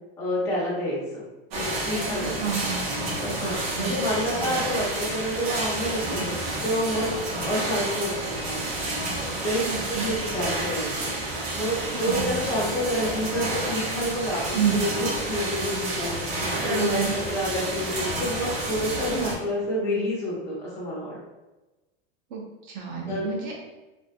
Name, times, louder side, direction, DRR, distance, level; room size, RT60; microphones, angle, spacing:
voice 1, 0.2-1.2 1.5-2.3 3.2-6.3 6.6-7.2 7.4-8.2 8.4-8.7 9.4-11.1 11.5-16.2 16.6-21.2 23.1-23.3, equal, 10° left, -7 dB, 0.4 m, -28 dB
sound 1, 1.5-19.3, right 1 dB, 70° right, 0.9 m, -30 dB
voice 2, 2.2-2.8 3.8-3.9 6.1-6.2 9.7-10.1 11.9-12.3 14.5-14.8 16.6-17.1 19.1-19.3 22.3-23.6, right 7 dB, 50° right, -1 dB, 0.6 m, -29 dB
2.5 x 2.5 x 2.4 m, 1.1 s
supercardioid pair, 165°, 31 cm